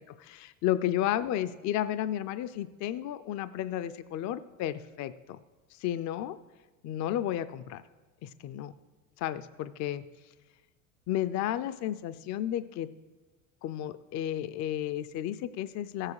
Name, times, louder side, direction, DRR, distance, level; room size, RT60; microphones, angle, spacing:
voice 1, 0.3-5.4 5.8-6.4 6.8-7.8 8.2-8.7 9.2-10.0 11.1-12.9 13.6-16.1, left 12 dB, 45° left, 13 dB, 0.5 m, -32 dB
15.0 x 7.4 x 4.8 m, 1.2 s
supercardioid pair, 95°, 42 cm